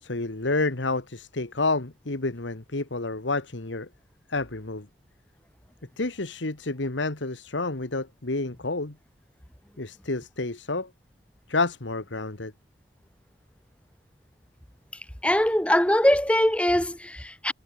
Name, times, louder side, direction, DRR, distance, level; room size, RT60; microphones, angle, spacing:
voice 1, 0.0-3.9 4.3-4.9 6.0-8.9 9.8-10.9 11.5-12.5, left 3 dB, 80° left, 1.7 m, -29 dB
voice 2, 15.2-17.5, left 1 dB, 5° left, 1.4 m, -22 dB
head